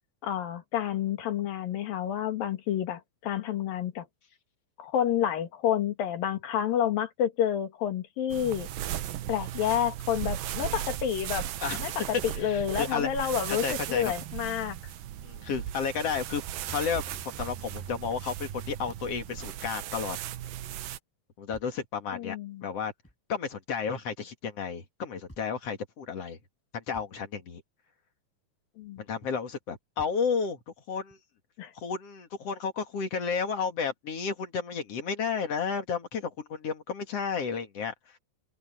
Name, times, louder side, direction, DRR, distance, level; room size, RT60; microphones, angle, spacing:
voice 1, 0.2-4.1 4.8-8.7 9.3-11.5 11.8-11.9 12.2-14.8 22.1-22.7 28.8-29.0 31.6-31.7, left 10 dB, 70° left, 3.7 m, -29 dB
sound 1, 8.3-21.0, right 11 dB, 75° right, 2.7 m, -37 dB
voice 2, 12.4-13.3 13.6-14.1 15.2-16.4 16.7-20.2 21.4-22.4 22.6-22.9 23.3-26.4 26.7-27.6 29.0-30.6 30.9-31.2 31.7-37.9, left 6 dB, 45° left, 2.9 m, -32 dB
sound 2, 17.1-17.3 17.9-18.0 18.7-20.6 21.5-21.9 23.0-23.2 24.5-24.6 25.3-25.6 26.9-27.2 28.8-28.9 30.0-30.3 31.1-31.2, equal, 5° left, 5.7 m, -54 dB
open air
omnidirectional pair, 4.3 m